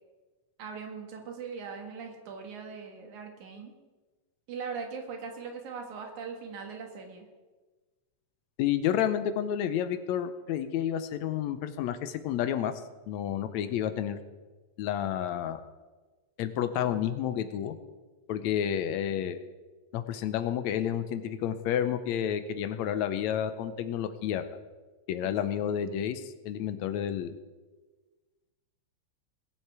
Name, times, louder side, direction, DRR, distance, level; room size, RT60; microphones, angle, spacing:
voice 1, 0.6-3.8 4.5-7.3 25.2-25.4, right 5 dB, 85° right, 3 dB, 3.1 m, -40 dB
voice 2, 8.6-12.7 13.1-14.2 14.8-15.6 16.4-17.8 18.3-19.4 19.9-24.5 25.1-27.4, left 10 dB, 80° left, 10 dB, 1.9 m, -30 dB
20.5 x 7.5 x 4.8 m, 1.3 s
omnidirectional pair, 3.3 m